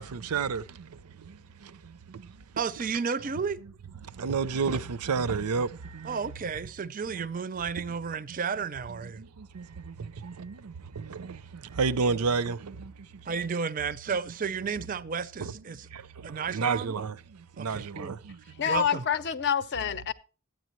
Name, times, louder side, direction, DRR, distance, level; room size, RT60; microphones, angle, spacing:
voice 1, 0.0-2.4 4.0-6.2 9.0-13.3 14.1-14.2 15.4-15.5 15.9-18.4, right 5 dB, 90° right, 0.6 m, -32 dB
voice 2, 2.6-3.6 6.0-9.2 13.3-15.9 16.2-17.0 17.6-18.1 18.7-19.0, right 5 dB, 40° right, 0.4 m, -32 dB
voice 3, 18.6-20.1, left 8 dB, 50° left, 0.6 m, -27 dB
13.0 x 9.2 x 3.0 m
head